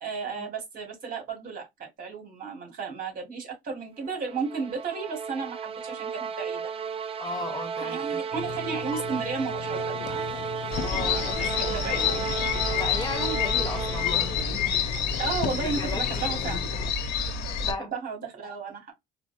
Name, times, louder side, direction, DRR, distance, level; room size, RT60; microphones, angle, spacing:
voice 1, 0.0-6.6 7.8-10.2 10.9-12.1 15.2-16.6 17.6-18.9, right 5 dB, 55° right, 2.3 m, -34 dB
sound 1, 4.0-14.6, right 6 dB, 35° right, 0.6 m, -34 dB
voice 2, 7.2-8.1 10.8-11.4 12.7-14.8 15.6-16.6 17.7-17.9, left 2 dB, 25° left, 1.1 m, -35 dB
sound 2, 8.3-16.9, left 11 dB, 55° left, 0.4 m, -37 dB
sound 3, 10.7-17.7, left 6 dB, 80° left, 1.0 m, -28 dB
4.5 x 2.1 x 2.6 m
cardioid pair, 110°, 17 cm